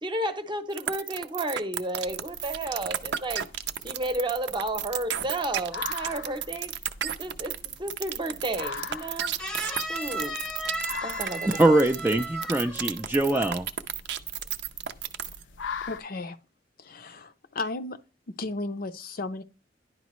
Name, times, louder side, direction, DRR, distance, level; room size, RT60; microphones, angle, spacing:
voice 1, 0.0-3.4 3.8-6.7 7.0-9.3 9.7-10.3 11.0-11.8, right 1 dB, 25° right, 0.8 m, -32 dB
sound 1, 0.8-15.4, right 10 dB, 65° right, 0.5 m, -32 dB
sound 2, 2.1-16.0, left 5 dB, 90° left, 0.7 m, -43 dB
sound 3, 9.4-13.0 13.3-13.7, right 1 dB, 5° left, 0.8 m, -35 dB
voice 2, 11.4-13.7, right 2 dB, 10° right, 0.4 m, -23 dB
voice 3, 15.8-16.4 16.8-18.0 18.4-19.4, left 2 dB, 55° left, 0.6 m, -34 dB
10.5 x 4.9 x 3.1 m
head